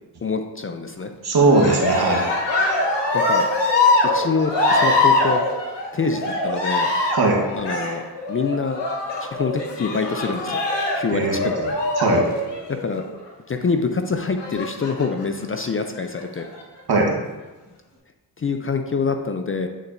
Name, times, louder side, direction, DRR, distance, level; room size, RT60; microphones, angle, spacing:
voice 1, 0.2-1.1 3.1-3.5 4.1-5.4 5.9-6.9 7.5-8.0 8.3-8.8 9.2-10.6 10.9-11.8 12.8-13.1 13.5-16.5 18.4-19.7, left 4 dB, 30° left, 6 dB, 0.5 m, -25 dB
voice 2, 1.2-2.3 7.1-7.4 11.1-11.4 12.0-12.2 16.9-17.2, right 3 dB, 60° right, -1 dB, 1.5 m, -18 dB
Cheering, 1.4-13.1 14.4-15.2 16.0-16.6, left 2 dB, 70° left, 1.2 m, -23 dB
8.8 x 4.0 x 2.6 m, 1.2 s
supercardioid pair, 45°, 44 cm